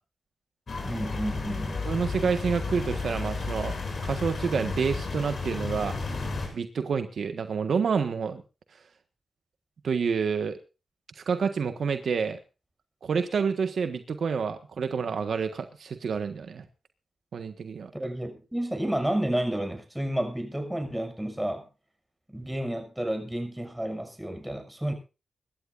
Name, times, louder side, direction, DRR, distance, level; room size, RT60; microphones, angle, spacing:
sound 1, 0.7-6.5, left 3 dB, 60° left, 7.5 m, -32 dB
voice 1, 0.8-1.8 17.9-21.7 22.3-24.9, right 1 dB, 10° right, 6 dB, 6.6 m, -31 dB
voice 2, 1.8-3.8 4.0-6.0 6.5-8.4 9.8-10.6 11.1-12.4 13.0-16.6 17.3-17.9, right 6 dB, 75° right, 8 dB, 1.4 m, -28 dB
25.5 x 13.0 x 2.6 m, 0.31 s
cardioid pair, 50°, 0 cm